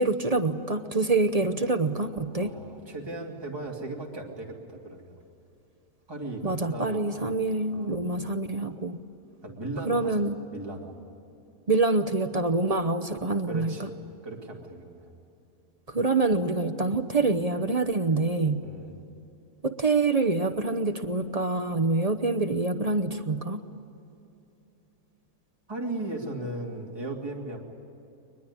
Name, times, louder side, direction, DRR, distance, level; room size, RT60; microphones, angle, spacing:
voice 1, 0.0-2.5 6.4-9.0 9.9-10.4 11.7-13.9 15.9-18.6 19.6-23.6, right 3 dB, 30° right, 6 dB, 0.7 m, -26 dB
voice 2, 2.4-5.2 6.1-7.3 7.7-8.1 9.4-10.2 10.5-10.9 13.5-14.0 14.2-15.1 18.6-19.0 25.7-27.6, right 2 dB, 15° right, -1 dB, 2.6 m, -37 dB
22.5 x 21.0 x 9.8 m, 2.8 s
omnidirectional pair, 1.6 m